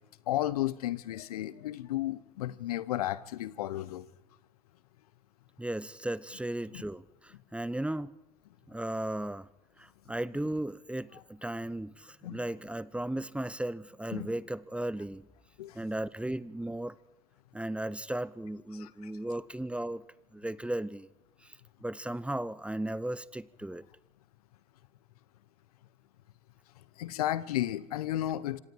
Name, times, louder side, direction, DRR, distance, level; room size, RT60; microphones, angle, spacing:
voice 1, 0.3-4.0 6.7-6.8 12.2-12.4 14.1-14.3 15.6-15.7 18.7-19.1 27.0-28.6, left 13 dB, 75° left, 1.1 m, -33 dB
voice 2, 5.6-8.1 8.7-9.5 9.8-15.2 15.7-16.9 17.5-20.0 20.3-21.1 21.8-23.8, right 1 dB, 5° right, 1.0 m, -36 dB
26.5 x 26.5 x 4.7 m
hypercardioid pair, 70°, 19 cm